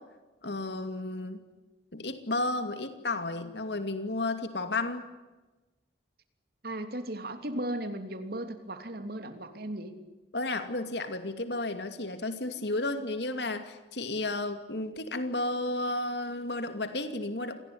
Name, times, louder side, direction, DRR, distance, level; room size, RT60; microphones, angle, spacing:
voice 1, 0.4-1.4 1.9-5.1 10.3-17.7, left 2 dB, 65° left, 8 dB, 2.6 m, -33 dB
voice 2, 6.6-9.9, right 1 dB, 55° right, 8 dB, 3.1 m, -36 dB
27.5 x 19.0 x 10.0 m, 1.1 s
head